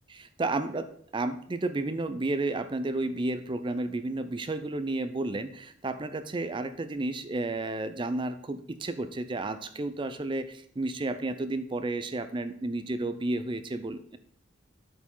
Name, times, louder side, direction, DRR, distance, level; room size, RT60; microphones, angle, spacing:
voice 1, 0.1-0.9 1.1-14.2, right 2 dB, 25° right, 11 dB, 0.4 m, -32 dB
8.1 x 4.9 x 3.8 m, 0.62 s
head